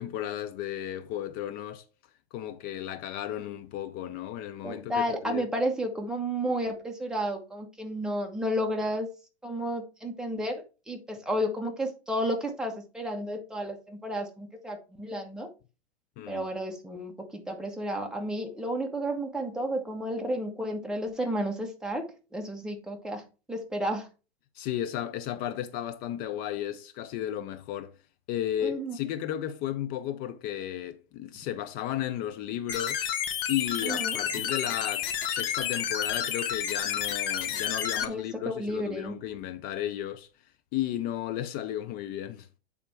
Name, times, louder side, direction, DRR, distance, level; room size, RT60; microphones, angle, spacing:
voice 1, 0.0-1.8 2.3-5.5 16.2-16.5 24.5-27.9 28.3-33.1 33.5-40.3 40.7-42.5, left 11 dB, 30° left, 0.4 m, -34 dB
voice 2, 4.6-9.1 9.4-15.5 16.3-22.0 22.3-23.2 23.5-24.1 28.6-29.0 33.8-34.2 38.0-39.1, equal, ahead, 1.2 m, -32 dB
sound 1, 32.7-38.0, left 9 dB, 55° left, 1.2 m, -30 dB
8.4 x 3.5 x 4.6 m
hypercardioid pair, 115°, 34 cm